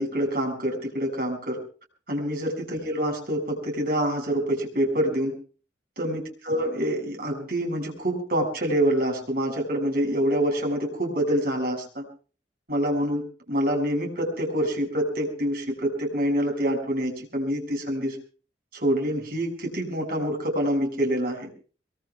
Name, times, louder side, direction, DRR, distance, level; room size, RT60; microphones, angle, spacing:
voice 1, 0.0-1.6 2.1-5.3 6.0-12.0 12.7-18.2 18.7-21.5, equal, 55° right, 3 dB, 6.7 m, -26 dB
24.5 x 23.5 x 2.4 m, 0.38 s
head